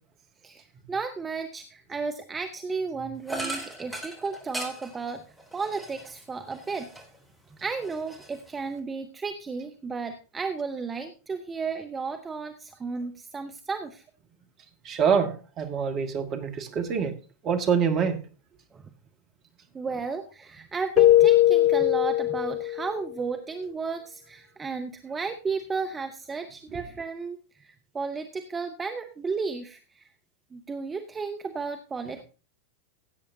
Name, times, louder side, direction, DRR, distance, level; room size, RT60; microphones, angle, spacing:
voice 1, 0.9-5.2 5.5-6.9 7.6-14.0 18.7-18.8 19.7-30.1 30.5-32.2, right 4 dB, 20° right, 0.9 m, -33 dB
sound 1, 3.3-7.2 7.6-8.8, right 1 dB, 5° left, 3.3 m, -39 dB
voice 2, 14.8-17.1 17.4-18.2 26.7-26.8, right 6 dB, 35° right, 1.7 m, -25 dB
Keyboard (musical), 21.0-23.0, left 14 dB, 45° left, 0.4 m, -20 dB
16.5 x 8.5 x 2.8 m
figure-of-eight pair, 85°, 0 cm